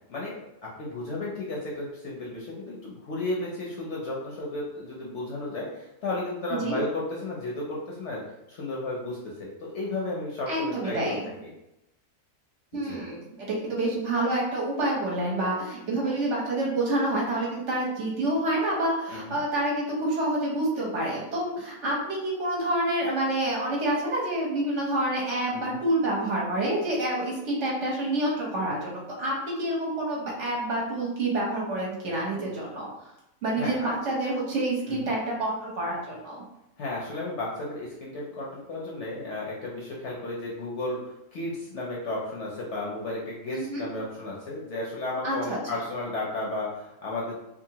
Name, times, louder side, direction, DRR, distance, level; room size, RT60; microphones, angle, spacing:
voice 1, 0.1-8.2 8.5-11.2 11.4-11.5 12.8-13.0 19.1-19.4 25.5-25.8 33.6-33.9 34.9-35.1 36.8-41.0 41.3-47.4, left 2 dB, 65° left, -4 dB, 0.8 m, -33 dB
voice 2, 10.5-11.2 12.7-32.9 33.4-36.4 43.5-43.8 45.2-45.6, right 1 dB, 60° right, -4 dB, 0.9 m, -28 dB
2.8 x 2.4 x 2.8 m, 0.88 s
omnidirectional pair, 1.6 m